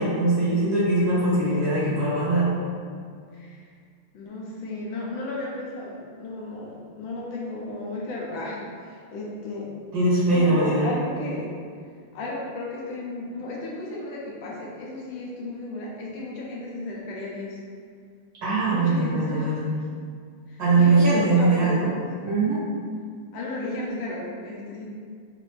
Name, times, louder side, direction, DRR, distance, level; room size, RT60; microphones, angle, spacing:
voice 1, 0.0-2.5 9.9-10.9 18.4-19.6 20.6-21.9 22.2-22.6, right 2 dB, 60° right, -10 dB, 2.2 m, -21 dB
voice 2, 3.3-3.6 4.1-9.7 10.3-11.5 12.1-17.6 18.7-19.6 20.5-21.9 23.3-24.9, left 2 dB, 70° left, -4 dB, 1.5 m, -34 dB
5.0 x 2.7 x 3.1 m, 2.1 s
omnidirectional pair, 2.4 m